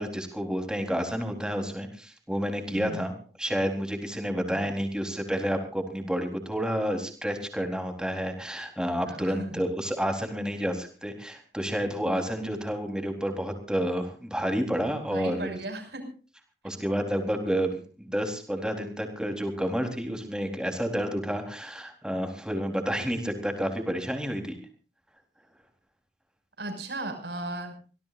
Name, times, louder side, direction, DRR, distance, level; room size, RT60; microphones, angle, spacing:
voice 1, 0.0-3.1 3.4-15.6 16.6-24.6, equal, 5° right, 5 dB, 3.9 m, -30 dB
voice 2, 2.7-3.1 4.5-4.7 9.1-9.6 15.1-16.1 26.6-27.7, right 2 dB, 70° right, 5 dB, 6.4 m, -36 dB
26.0 x 18.0 x 2.6 m, 0.38 s
head